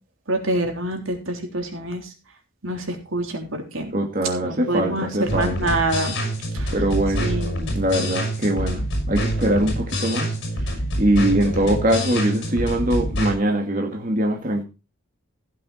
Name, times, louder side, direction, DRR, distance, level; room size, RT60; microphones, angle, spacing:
voice 1, 0.3-2.1 2.6-3.9 4.4-6.1 6.5-6.7 7.2-7.7, right 1 dB, 80° right, 3.5 m, -26 dB
voice 2, 3.9-5.7 6.7-7.4 7.7-10.3 11.0-14.6, right 1 dB, 40° right, 2.2 m, -22 dB
sound 1, 5.3-13.3, equal, 55° left, 6.0 m, -26 dB
15.5 x 8.4 x 4.3 m
head